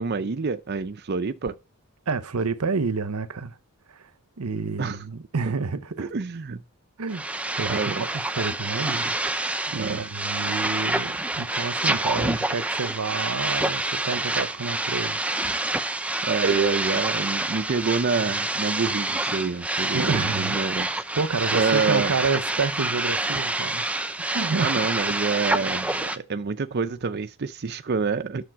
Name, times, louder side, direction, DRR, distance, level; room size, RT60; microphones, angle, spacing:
voice 1, 0.0-1.6 4.8-5.0 6.0-6.6 7.7-8.1 9.7-10.0 16.2-20.9 21.5-22.1 24.6-28.4, right 4 dB, 45° right, 0.5 m, -27 dB
voice 2, 2.1-3.6 3.9-4.1 4.4-6.1 7.0-7.2 7.6-15.2 19.9-20.6 21.2-23.9 24.3-24.7, right 4 dB, 80° right, 0.8 m, -29 dB
sound 1, 7.1-26.2, right 2 dB, 5° right, 0.6 m, -27 dB
10.0 x 7.0 x 4.6 m
head